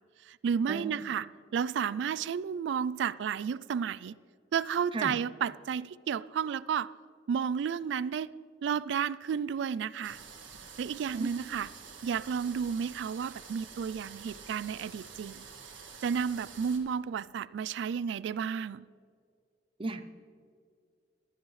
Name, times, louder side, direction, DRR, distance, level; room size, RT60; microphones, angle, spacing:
voice 1, 0.2-1.3 1.5-4.2 4.5-6.9 7.3-8.3 8.6-10.2 10.8-11.7 12.0-15.5 16.0-18.8, right 7 dB, 70° right, 0.3 m, -32 dB
sound 1, 10.0-16.8, right 6 dB, 85° right, 1.8 m, -48 dB
voice 2, 19.8-20.1, right 2 dB, 30° right, 0.6 m, -35 dB
15.5 x 12.5 x 3.2 m
head